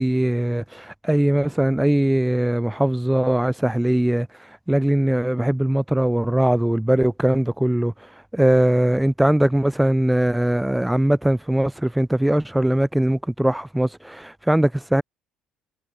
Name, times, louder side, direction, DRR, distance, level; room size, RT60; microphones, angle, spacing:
voice 1, 0.0-15.0, right 1 dB, 5° right, 1.0 m, -20 dB
cardioid pair, 140°, 0 cm